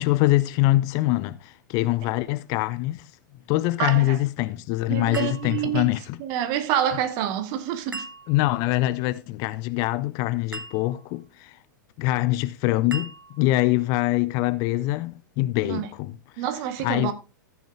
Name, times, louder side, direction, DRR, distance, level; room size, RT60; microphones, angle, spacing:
voice 1, 0.0-3.1 3.5-6.2 8.3-11.6 12.0-13.1 13.4-16.2 16.8-17.1, left 17 dB, 35° left, 0.4 m, -24 dB
voice 2, 3.8-4.2 4.9-5.9 6.2-8.0 15.7-15.9 16.4-17.1, right 10 dB, 40° right, 1.3 m, -27 dB
sound 1, 5.1-6.1 7.9-8.7 10.5-11.2 12.9-13.7, right 2 dB, 80° right, 0.9 m, -40 dB
14.0 x 6.1 x 3.5 m
figure-of-eight pair, 100°, 11 cm